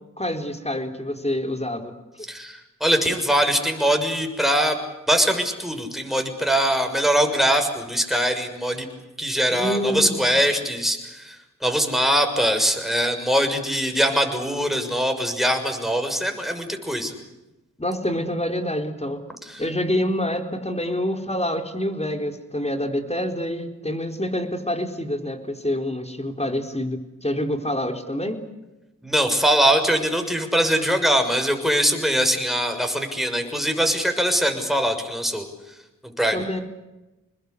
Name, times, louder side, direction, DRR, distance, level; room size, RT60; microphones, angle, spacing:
voice 1, 0.2-1.9 9.5-10.2 17.8-19.2 19.6-28.4 36.3-36.6, left 1 dB, 20° left, 6 dB, 4.1 m, -27 dB
voice 2, 2.3-4.8 5.1-8.9 9.2-17.1 19.4-19.6 29.0-35.4 36.2-36.4, equal, ahead, 5 dB, 6.4 m, -22 dB
27.5 x 21.0 x 8.4 m, 1.0 s
cardioid pair, 45°, 32 cm